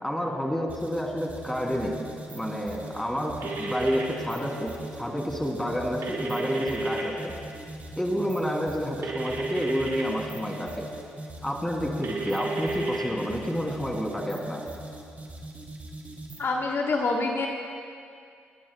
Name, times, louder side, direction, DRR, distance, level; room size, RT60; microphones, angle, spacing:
voice 1, 0.0-2.0 2.3-7.3 8.0-10.9 11.4-14.6, equal, 5° left, 0 dB, 2.9 m, -30 dB
sound 1, 0.7-16.5, right 1 dB, 35° right, 2.7 m, -41 dB
sound 2, 3.4-4.0 6.0-7.0 9.0-10.0 12.0-13.1, right 2 dB, 80° right, 2.2 m, -31 dB
voice 2, 16.4-17.5, left 3 dB, 55° left, 0 dB, 1.2 m, -26 dB
28.5 x 11.5 x 2.3 m, 2.3 s
supercardioid pair, 55°, 5 cm